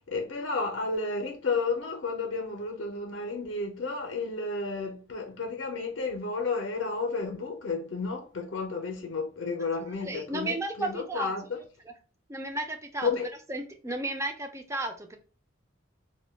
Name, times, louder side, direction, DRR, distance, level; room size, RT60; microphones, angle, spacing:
voice 1, 0.1-11.6 13.0-13.3, left 4 dB, 65° left, 0.5 m, -32 dB
voice 2, 10.0-11.3 12.3-13.1 13.5-15.2, right 2 dB, 15° right, 0.4 m, -33 dB
2.2 x 2.1 x 3.1 m
head